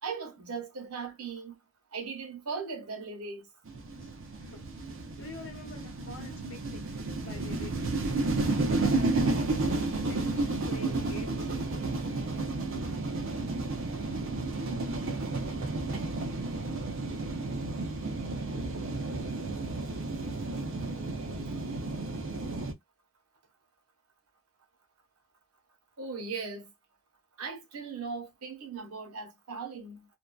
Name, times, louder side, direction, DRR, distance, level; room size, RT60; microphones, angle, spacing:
voice 1, 0.0-1.5 1.9-3.5 26.0-26.7 27.4-30.1, right 5 dB, 90° right, 1.0 m, -38 dB
sound 1, 3.7-22.7, right 2 dB, 60° right, 0.5 m, -32 dB
voice 2, 4.0-4.7 5.2-6.8 7.1-7.9 8.8-11.5 11.9-12.3 14.2-14.4, left 2 dB, 60° left, 0.9 m, -48 dB
2.6 x 2.2 x 2.2 m
head